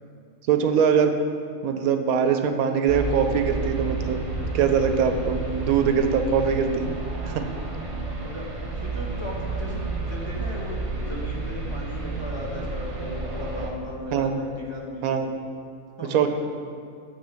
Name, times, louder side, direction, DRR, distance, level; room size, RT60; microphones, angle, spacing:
voice 1, 0.5-1.2 1.6-4.2 4.5-7.0 7.3-7.5 14.1-14.4 15.0-15.3 16.0-16.3, right 7 dB, 90° right, 7 dB, 1.1 m, -22 dB
sound 1, 2.9-13.7, right 3 dB, 30° right, 0.6 m, -31 dB
voice 2, 8.8-15.2 16.0-16.3, left 1 dB, 20° left, -4 dB, 1.0 m, -37 dB
9.4 x 3.6 x 6.9 m, 2.6 s
omnidirectional pair, 1.5 m